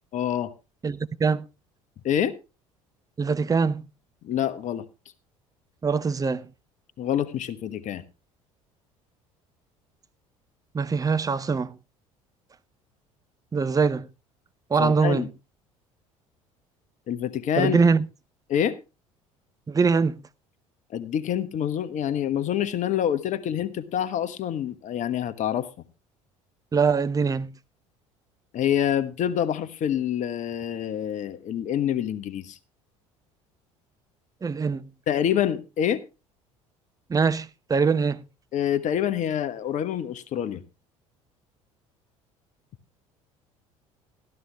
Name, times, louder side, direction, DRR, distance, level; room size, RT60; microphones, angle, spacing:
voice 1, 0.1-0.5 2.0-2.3 4.2-4.8 7.0-8.0 14.8-15.3 17.1-17.8 18.5-18.8 20.9-25.7 28.5-32.6 35.1-36.0 38.5-40.6, left 10 dB, 45° left, 1.1 m, -26 dB
voice 2, 0.8-1.5 3.2-3.8 5.8-6.5 10.7-11.7 13.5-14.1 14.7-15.3 17.6-18.1 19.7-20.2 26.7-27.5 34.4-34.9 37.1-38.2, right 5 dB, 20° right, 0.7 m, -23 dB
13.0 x 12.5 x 3.4 m
figure-of-eight pair, 60°, 17 cm